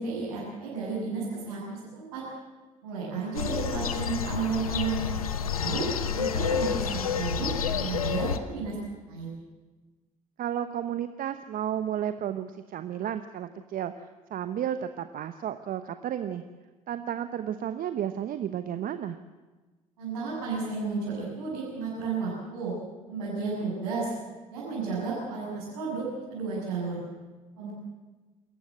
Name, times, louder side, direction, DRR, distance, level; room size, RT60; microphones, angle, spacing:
voice 1, 0.0-2.2 2.8-5.1 5.5-8.8 9.1-9.3 20.0-22.7 23.1-24.1 24.5-26.0 26.3-27.0 27.6-27.7, right 4 dB, 80° right, -8 dB, 7.8 m, -32 dB
sound 1, 3.3-8.4, left 7 dB, 90° left, 0.9 m, -29 dB
voice 2, 10.4-16.4 16.9-19.2, right 10 dB, 50° right, 10 dB, 1.0 m, -32 dB
27.5 x 15.0 x 7.7 m, 1.3 s
hypercardioid pair, 55°, 18 cm